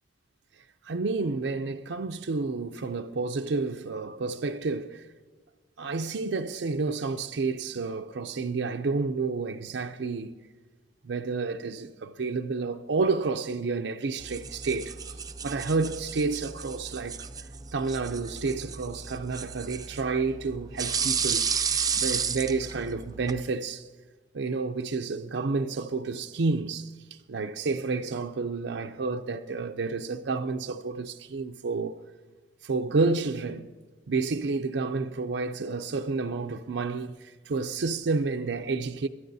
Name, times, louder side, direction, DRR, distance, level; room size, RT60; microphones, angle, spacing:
voice 1, 0.8-5.1 5.8-10.3 11.0-15.0 15.4-17.3 17.7-21.5 21.9-23.9 24.3-32.0 32.6-33.7 34.1-39.1, right 4 dB, 80° right, 0.5 m, -30 dB
sound 1, 14.2-23.4, right 6 dB, 20° right, 0.5 m, -33 dB
22.5 x 12.5 x 2.7 m
head